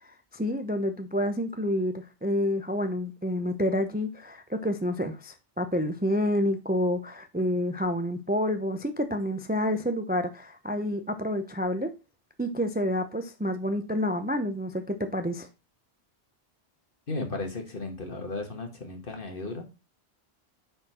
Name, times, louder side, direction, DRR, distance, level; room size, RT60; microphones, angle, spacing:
voice 1, 0.0-11.9 12.4-15.5, left 1 dB, 10° right, 0.5 m, -29 dB
voice 2, 17.1-19.6, left 2 dB, 55° left, 1.8 m, -35 dB
9.3 x 4.3 x 4.2 m
omnidirectional pair, 1.1 m